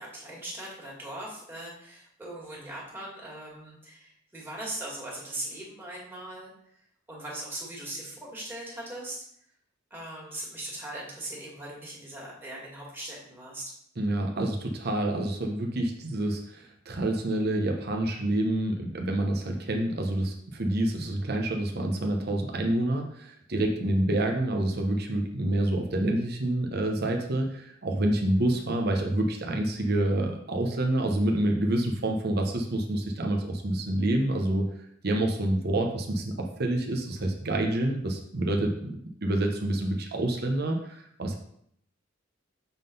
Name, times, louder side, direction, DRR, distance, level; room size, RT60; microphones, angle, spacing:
voice 1, 0.0-6.5 7.1-9.2 9.9-13.7, right 1 dB, 10° right, -5 dB, 2.2 m, -40 dB
voice 2, 14.0-34.7 35.0-39.0 39.2-41.3, right 1 dB, 55° right, 2 dB, 0.9 m, -27 dB
7.3 x 3.9 x 5.4 m, 0.69 s
head